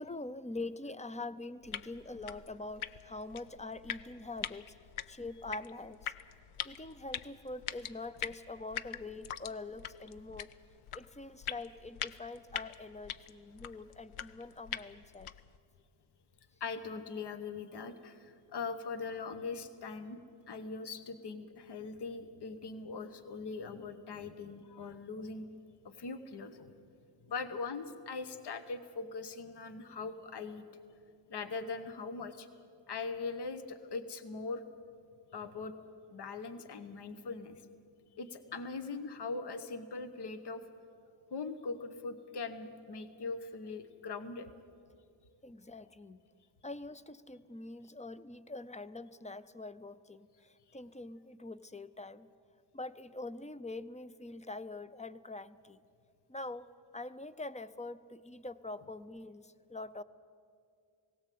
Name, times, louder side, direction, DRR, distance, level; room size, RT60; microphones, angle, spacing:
voice 1, 0.0-4.8 5.1-6.1 6.6-10.5 10.9-15.3 45.4-46.2 46.6-52.3 52.7-55.8 56.3-56.7 56.9-60.0, left 2 dB, 15° left, 15 dB, 0.5 m, -44 dB
sound 1, 1.6-15.6, left 10 dB, 85° left, 0.7 m, -44 dB
voice 2, 16.6-20.2 20.5-25.4 26.0-26.7 27.3-30.6 31.3-32.5 32.9-34.6 35.3-35.7 36.1-37.6 38.2-40.6 41.3-44.5, left 4 dB, 55° left, 11 dB, 1.1 m, -41 dB
18.0 x 17.5 x 8.5 m, 2.4 s
wide cardioid pair, 115°, 49 cm